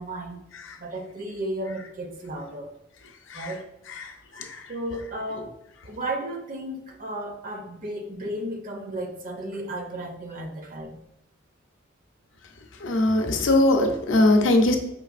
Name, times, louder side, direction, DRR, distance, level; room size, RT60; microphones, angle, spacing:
voice 1, 0.0-0.5 0.8-2.7 3.3-3.7 4.7-5.5 5.8-11.0, right 1 dB, 40° right, 4 dB, 0.5 m, -34 dB
voice 2, 3.9-4.6 12.8-14.8, left 2 dB, 70° left, 4 dB, 0.6 m, -21 dB
5.1 x 3.2 x 2.4 m, 0.86 s
head